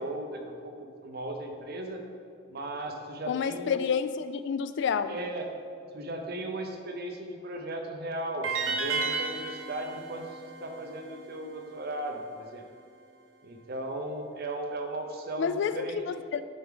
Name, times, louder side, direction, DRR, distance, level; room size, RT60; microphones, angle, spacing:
voice 1, 0.0-2.1 2.5-3.8 5.1-5.5 5.9-12.7 13.4-16.0, right 1 dB, 55° right, 3 dB, 0.8 m, -37 dB
voice 2, 3.3-5.1 15.4-16.4, left 6 dB, 65° left, 12 dB, 0.3 m, -29 dB
sound 1, 8.4-11.6, right 4 dB, 80° right, 0.9 m, -33 dB
9.3 x 4.7 x 3.8 m, 2.3 s
head